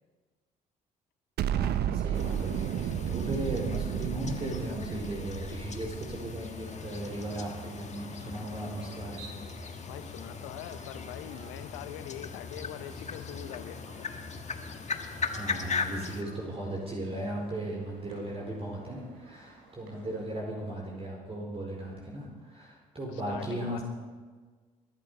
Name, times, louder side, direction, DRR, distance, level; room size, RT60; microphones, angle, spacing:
Explosion, 1.4-6.5, right 10 dB, 55° right, 0.7 m, -32 dB
voice 1, 1.5-9.3 15.3-23.8, right 1 dB, 30° right, -3 dB, 4.7 m, -37 dB
sound 1, 2.1-16.2, left 5 dB, 35° left, 1.7 m, -39 dB
sound 2, 6.6-20.3, right 3 dB, 75° right, 4.9 m, -55 dB
voice 2, 9.9-14.1 23.1-23.8, left 13 dB, 70° left, 12 dB, 1.0 m, -43 dB
23.0 x 11.5 x 5.0 m, 1.4 s
hypercardioid pair, 50°, 20 cm